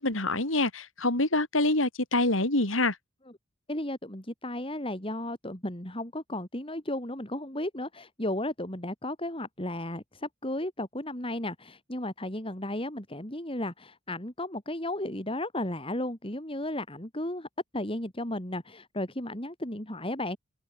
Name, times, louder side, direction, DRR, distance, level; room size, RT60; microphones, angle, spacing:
voice 1, 0.0-2.9, left 2 dB, 85° left, 5.0 m, -26 dB
voice 2, 3.7-17.5 17.7-20.4, left 1 dB, 25° left, 4.7 m, -34 dB
head